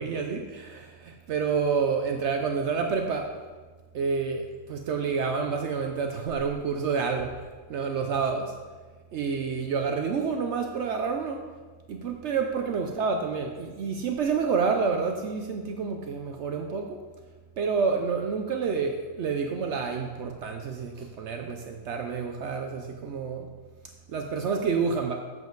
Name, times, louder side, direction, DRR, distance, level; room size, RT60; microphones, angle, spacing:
voice 1, 0.0-3.3 3.9-8.6 9.1-11.4 11.9-17.0 17.6-23.5 24.1-25.1, right 5 dB, 65° right, 4 dB, 0.9 m, -29 dB
7.6 x 7.2 x 3.9 m, 1.4 s
omnidirectional pair, 1.3 m